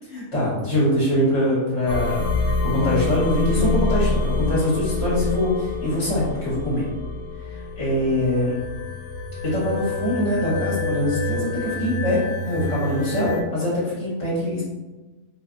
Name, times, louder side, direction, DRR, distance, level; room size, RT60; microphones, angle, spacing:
voice 1, 0.1-6.9 7.4-8.5 9.4-14.6, left 1 dB, 45° left, -9 dB, 1.4 m, -23 dB
sound 1, 1.9-13.4, left 3 dB, 65° left, 0.7 m, -27 dB
3.3 x 3.0 x 2.5 m, 1.2 s
omnidirectional pair, 1.7 m